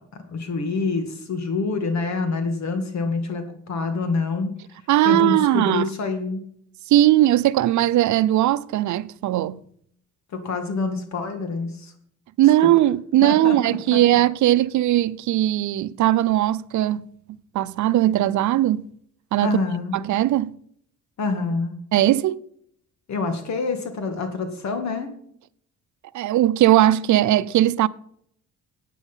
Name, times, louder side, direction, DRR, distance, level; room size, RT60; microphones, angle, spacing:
voice 1, 0.1-4.5 5.0-6.4 10.3-11.9 13.2-14.0 19.4-19.9 21.2-21.8 23.1-25.1, left 3 dB, 65° left, 2.0 m, -26 dB
voice 2, 4.9-5.9 6.9-9.6 12.4-17.0 17.5-18.8 19.3-19.5 19.9-20.6 21.9-22.5 26.1-27.9, right 14 dB, 70° right, 0.6 m, -19 dB
11.5 x 9.3 x 5.6 m
cardioid pair, 90°, 30 cm